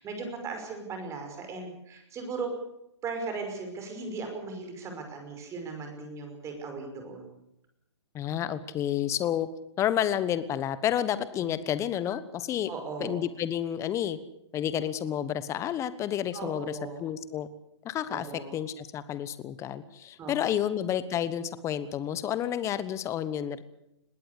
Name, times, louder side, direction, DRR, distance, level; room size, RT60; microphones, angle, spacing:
voice 1, 0.0-2.5 3.0-7.4 11.4-11.5 12.7-13.2 16.3-17.0 18.1-18.6 20.2-20.6, right 4 dB, 20° right, 5 dB, 5.6 m, -38 dB
voice 2, 8.1-9.5 9.8-12.7 13.0-14.2 14.5-17.5 17.8-18.3 18.5-23.6, left 10 dB, 20° left, 15 dB, 1.2 m, -30 dB
21.0 x 17.0 x 8.2 m, 0.82 s
hypercardioid pair, 130°, 15 cm